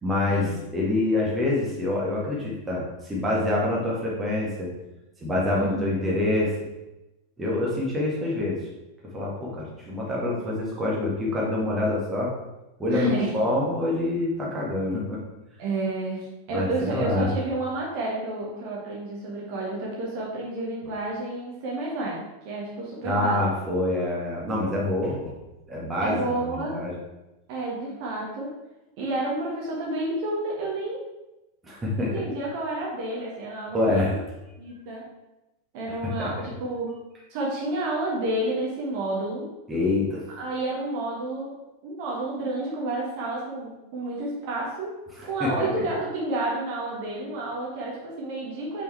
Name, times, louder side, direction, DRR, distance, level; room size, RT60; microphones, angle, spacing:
voice 1, 0.0-4.7 5.2-6.5 7.4-8.6 9.1-12.3 12.8-15.2 16.5-17.3 23.0-25.3 25.7-26.9 31.6-32.2 33.7-34.1 36.2-36.5 39.7-40.2 45.4-45.7, left 2 dB, 15° right, -4 dB, 1.8 m, -26 dB
voice 2, 12.9-13.4 15.6-23.5 26.0-26.8 27.5-28.6 29.0-31.0 32.0-34.2 34.6-35.1 35.7-37.0 37.3-39.5 40.3-44.9 45.2-48.8, right 2 dB, 45° right, -3 dB, 1.6 m, -30 dB
5.4 x 4.4 x 4.6 m, 0.99 s
figure-of-eight pair, 90°, 0 cm